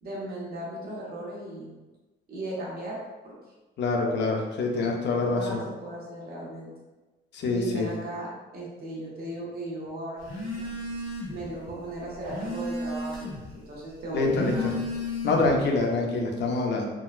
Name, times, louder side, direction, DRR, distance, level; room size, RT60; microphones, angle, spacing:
voice 1, 0.0-1.7 2.3-3.0 3.2-3.3 4.7-6.7 7.4-10.7 11.3-14.9, right 1 dB, 50° right, -5 dB, 1.2 m, -37 dB
voice 2, 3.8-5.6 7.3-7.9 14.1-14.5 15.2-16.9, left 3 dB, 60° left, 1 dB, 0.7 m, -25 dB
Telephone, 10.2-11.5 11.8-13.5 14.1-15.6, left 2 dB, 85° left, 1.4 m, -33 dB
3.8 x 2.2 x 2.4 m, 1.2 s
cardioid pair, 90°, 20 cm